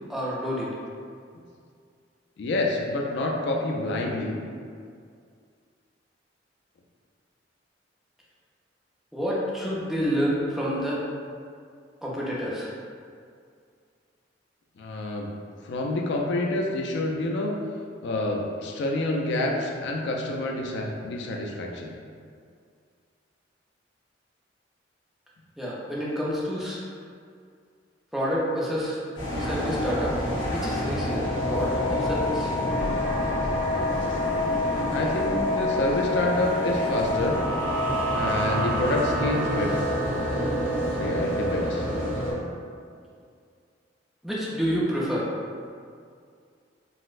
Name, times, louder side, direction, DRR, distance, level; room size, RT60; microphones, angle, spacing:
voice 1, 0.1-0.7 9.1-11.0 12.0-12.7 25.6-26.8 28.1-29.0 29.4-30.2 30.5-31.2 31.5-32.5 44.2-45.3, equal, ahead, -7 dB, 0.5 m, -28 dB
voice 2, 2.4-4.4 14.8-15.3 15.6-17.5 18.0-21.9 34.4-37.4 38.1-39.8 40.9-41.8, left 2 dB, 65° left, 0 dB, 0.3 m, -28 dB
sound 1, 29.2-42.3, left 1 dB, 80° left, 1.3 m, -27 dB
sound 2, 32.7-38.9, right 1 dB, 50° right, 0.7 m, -37 dB
4.0 x 2.0 x 2.4 m, 2.2 s
head